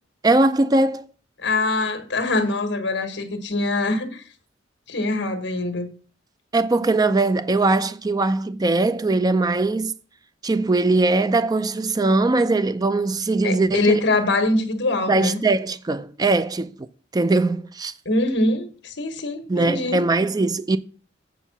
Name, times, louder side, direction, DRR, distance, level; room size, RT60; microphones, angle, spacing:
voice 1, 0.2-1.1 6.5-10.0 10.4-14.0 15.1-16.9 17.1-17.9 19.5-20.8, right 2 dB, 20° right, 0.4 m, -20 dB
voice 2, 1.4-4.2 4.9-5.9 13.4-15.4 18.0-20.0, left 2 dB, 65° left, 1.4 m, -23 dB
8.2 x 4.6 x 7.2 m
head